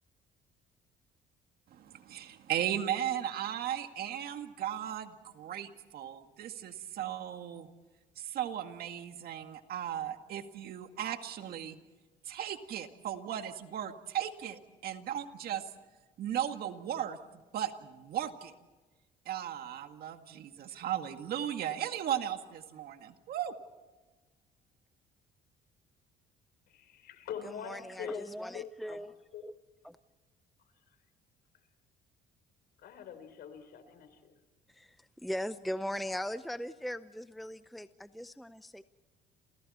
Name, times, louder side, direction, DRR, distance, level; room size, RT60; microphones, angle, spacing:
voice 1, 1.7-7.7 8.2-11.8 12.3-15.6 16.2-17.2 17.5-18.5 19.3-23.5, right 10 dB, 65° right, 7 dB, 2.1 m, -36 dB
voice 2, 26.7-28.3 28.5-28.6 29.3-29.4 32.8-34.3, left 8 dB, 70° left, 9 dB, 4.2 m, -43 dB
voice 3, 27.4-29.1 29.4-29.5 29.8-30.0 34.7-38.8, equal, ahead, 12 dB, 0.7 m, -39 dB
28.5 x 28.5 x 4.4 m, 1.2 s
cardioid pair, 110°, 17 cm